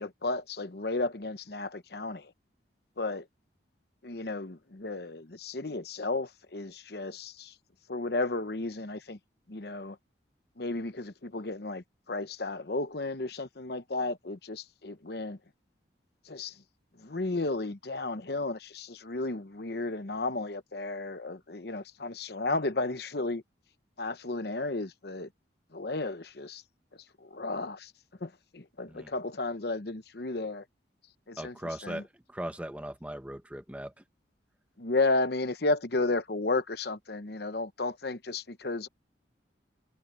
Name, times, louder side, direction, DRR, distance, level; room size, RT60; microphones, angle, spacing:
voice 1, 0.0-2.3 3.0-3.3 4.0-7.5 7.9-9.2 9.5-10.0 10.6-15.4 16.3-16.5 17.0-23.4 24.0-25.3 25.7-26.6 27.2-27.9 28.2-30.6 31.3-31.5 31.8-32.0 34.8-38.9, left 2 dB, 55° left, 0.9 m, -33 dB
voice 2, 31.4-34.0, right 1 dB, 5° right, 0.9 m, -39 dB
head